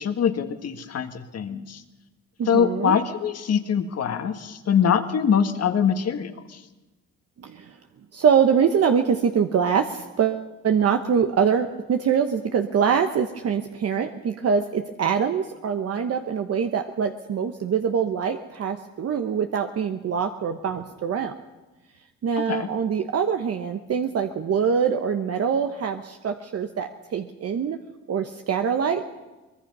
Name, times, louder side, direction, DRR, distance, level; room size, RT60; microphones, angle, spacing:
voice 1, 0.0-1.8 2.5-6.6 22.5-22.7, left 7 dB, 55° left, 8 dB, 1.7 m, -23 dB
voice 2, 2.4-3.0 7.4-7.8 8.1-21.3 22.2-27.8 28.1-29.0, right 7 dB, 55° right, 6 dB, 1.1 m, -24 dB
23.5 x 21.0 x 5.5 m, 1.1 s
cardioid pair, 90°, 30 cm